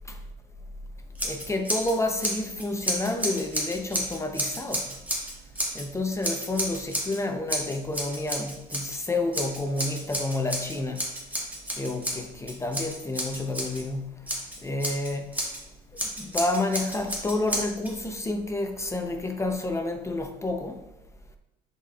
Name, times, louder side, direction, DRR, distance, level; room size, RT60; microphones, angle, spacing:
Scissors, 1.1-5.8 6.2-7.2 7.5-9.0 9.3-13.8 14.3-15.6 16.0-17.9, equal, 10° right, 1.7 m, -31 dB
voice 1, 1.2-4.9 5.7-11.1 11.7-14.3 14.6-15.5 16.2-20.8, left 2 dB, 15° left, 0.6 m, -30 dB
10.0 x 4.2 x 2.3 m
cardioid pair, 110°, 17 cm